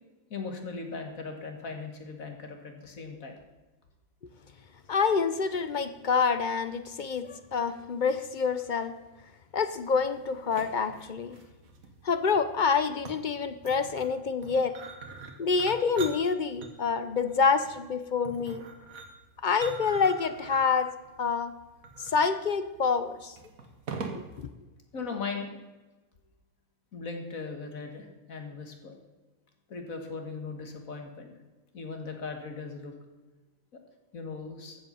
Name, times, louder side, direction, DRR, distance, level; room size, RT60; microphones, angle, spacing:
voice 1, 0.3-3.4 24.9-25.6 26.9-29.0 29.7-31.3 31.7-32.9 33.7-33.8 34.1-34.8, left 4 dB, 75° left, 4 dB, 2.0 m, -38 dB
voice 2, 4.9-9.0 9.5-11.4 12.0-14.8 15.4-18.6 19.4-20.9 21.2-21.5 22.0-23.4 24.2-24.5, left 5 dB, 50° left, 11 dB, 0.6 m, -27 dB
sound 1, 9.7-24.5, right 4 dB, 80° right, 1.7 m, -44 dB
14.0 x 7.9 x 5.6 m, 1.1 s
omnidirectional pair, 1.5 m